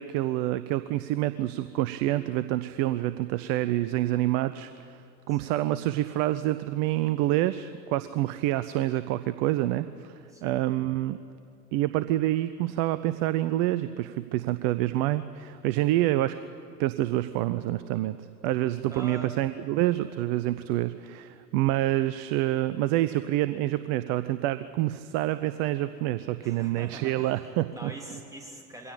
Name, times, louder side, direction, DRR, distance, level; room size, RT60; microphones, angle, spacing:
voice 1, 0.0-11.2 11.7-16.4 16.8-18.2 18.4-27.9, right 15 dB, 30° right, 13 dB, 0.6 m, -27 dB
voice 2, 10.3-10.6 18.9-19.3 26.4-27.4 27.7-28.9, right 1 dB, 5° right, 1 dB, 3.2 m, -43 dB
22.5 x 16.5 x 8.7 m, 2.5 s
figure-of-eight pair, 90°, 49 cm